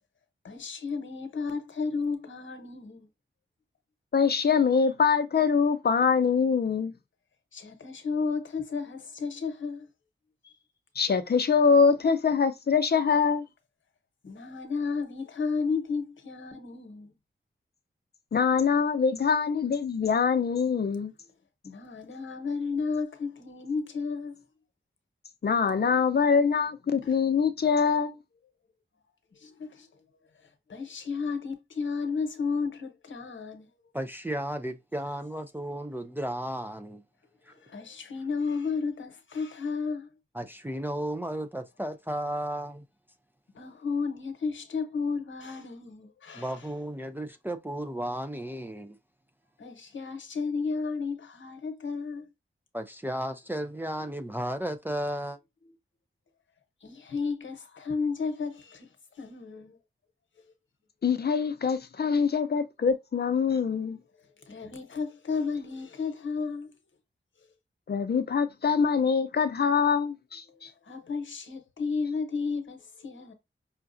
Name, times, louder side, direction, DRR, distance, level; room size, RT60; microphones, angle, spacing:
voice 1, 0.4-3.1 7.5-9.9 14.2-17.1 21.6-24.4 27.0-27.2 29.3-29.9 30.7-33.7 37.5-40.1 43.5-46.7 49.6-52.3 56.8-59.8 64.4-66.7 70.8-73.3, left 4 dB, 70° left, 1.0 m, -33 dB
voice 2, 4.1-6.9 11.0-13.4 18.3-21.1 25.4-28.2 61.0-64.0 67.9-70.7, left 6 dB, 50° left, 0.6 m, -24 dB
voice 3, 33.9-37.0 37.5-37.6 40.3-42.8 46.3-49.0 52.7-55.4, right 1 dB, 10° right, 0.4 m, -34 dB
5.6 x 2.4 x 2.6 m
wide cardioid pair, 100°, 20 cm